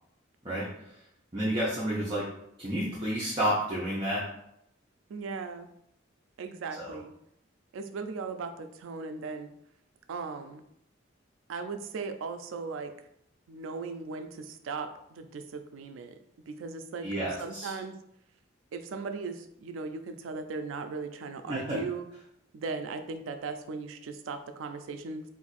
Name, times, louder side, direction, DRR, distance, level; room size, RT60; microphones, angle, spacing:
voice 1, 1.3-2.2 2.6-4.2 6.8-7.0 17.0-17.7 21.5-21.8, right 1 dB, 25° right, -8 dB, 0.6 m, -30 dB
voice 2, 5.1-5.7 6.4-7.1 7.7-9.5 10.1-10.6 11.5-12.9 13.5-16.1 16.5-17.1 17.4-17.9 18.7-22.1 22.5-25.2, right 4 dB, 85° right, 8 dB, 0.4 m, -38 dB
2.6 x 2.4 x 4.0 m, 0.77 s
head